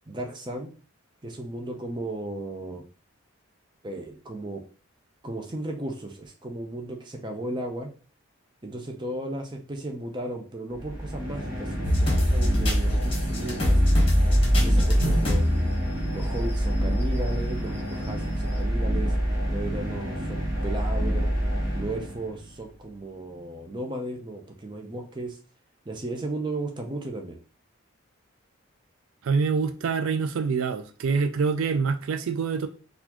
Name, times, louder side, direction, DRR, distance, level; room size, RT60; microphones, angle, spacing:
voice 1, 0.1-0.7 1.2-2.8 3.8-4.6 5.2-7.9 8.6-13.8 14.5-15.5 16.1-19.1 19.5-21.3 21.7-25.4 25.9-27.4, right 1 dB, 20° right, 0.6 m, -35 dB
sound 1, 10.7-22.5, equal, 40° right, 1.4 m, -27 dB
sound 2, 11.8-16.5 17.0-17.1 18.0-18.1, equal, 25° left, 1.0 m, -23 dB
voice 2, 29.2-32.7, right 5 dB, 75° right, 0.4 m, -26 dB
4.0 x 2.5 x 2.9 m
head